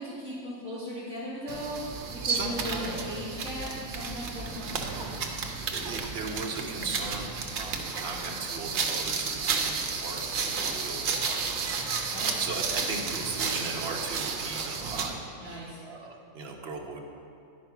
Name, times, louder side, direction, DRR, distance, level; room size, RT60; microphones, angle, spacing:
voice 1, 0.0-5.2 12.1-12.5 15.4-15.8, equal, ahead, -13 dB, 2.1 m, -38 dB
sound 1, 1.5-15.2, right 5 dB, 70° right, 1.1 m, -32 dB
voice 2, 2.2-3.0 5.5-11.5 12.4-17.0, right 3 dB, 55° right, 1 dB, 1.1 m, -37 dB
10.5 x 4.6 x 5.8 m, 2.5 s
omnidirectional pair, 1.4 m